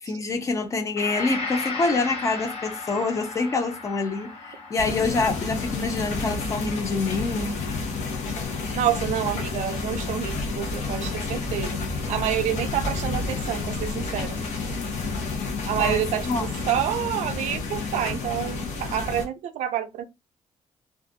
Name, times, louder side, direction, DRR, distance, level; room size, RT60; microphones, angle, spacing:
voice 1, 0.1-7.6 15.8-16.5, left 3 dB, 25° left, 0.4 m, -26 dB
Gong, 1.0-9.0, left 4 dB, 55° left, 0.8 m, -37 dB
sound 1, 4.8-19.2, left 3 dB, 90° left, 0.8 m, -30 dB
voice 2, 8.8-11.8 12.1-14.4 15.7-20.1, right 11 dB, 85° right, 0.4 m, -28 dB
2.5 x 2.4 x 2.6 m
cardioid pair, 180°, 12 cm